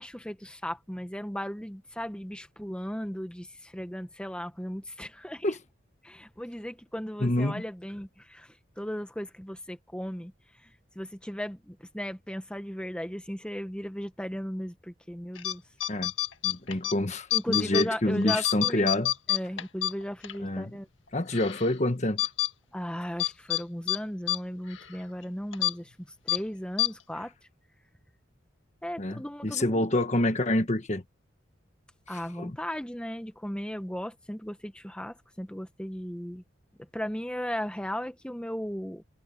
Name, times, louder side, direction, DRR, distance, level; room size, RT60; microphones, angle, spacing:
voice 1, 0.0-5.6 6.0-10.3 10.6-15.6 17.3-18.9 19.3-20.9 22.7-25.9 26.2-27.3 28.8-30.1 32.1-36.4 36.9-39.0, equal, 5° left, 1.2 m, -36 dB
voice 2, 7.2-7.6 15.9-16.1 16.4-19.1 20.4-20.7 21.1-22.2 29.0-31.0 32.4-32.6, left 1 dB, 35° left, 1.4 m, -27 dB
sound 1, 15.4-15.5 15.8-16.9 17.3-17.9 18.2-20.4 20.7-20.8 21.3-21.7 22.2-22.5 23.2-23.6 23.9-24.0 24.3-24.4 24.7-24.9 25.5-25.7 26.3-26.4 26.8-26.9, left 13 dB, 80° left, 1.7 m, -27 dB
head